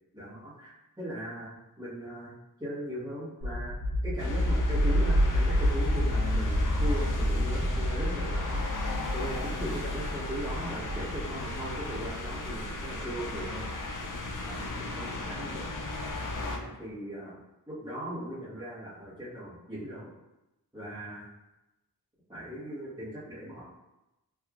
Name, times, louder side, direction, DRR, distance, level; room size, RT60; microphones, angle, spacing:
voice 1, 0.1-2.3 2.6-3.8 4.0-8.6 9.1-13.6 14.4-15.7 16.3-20.1 20.7-21.3 22.3-23.6, equal, 10° right, -11 dB, 1.3 m, -39 dB
sound 1, 3.4-14.1, equal, 55° right, 0.9 m, -29 dB
sound 2, 4.2-16.6, left 2 dB, 55° left, 0.5 m, -36 dB
3.2 x 2.7 x 2.4 m, 0.96 s
wide cardioid pair, 70°, 38 cm